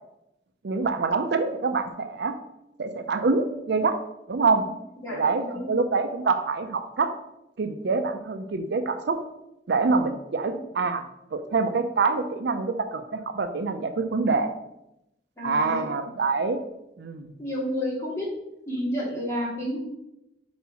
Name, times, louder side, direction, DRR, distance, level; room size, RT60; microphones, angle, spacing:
voice 1, 0.6-2.3 2.8-4.0 4.3-4.6 5.1-7.1 7.6-9.2 9.7-11.0 11.3-14.5 15.4-16.6 17.0-17.3, right 4 dB, 65° right, 8 dB, 0.5 m, -25 dB
voice 2, 5.0-5.7 15.4-15.9 17.4-18.3 18.7-19.8, left 1 dB, 15° left, -6 dB, 2.3 m, -30 dB
4.7 x 4.3 x 5.6 m, 0.87 s
head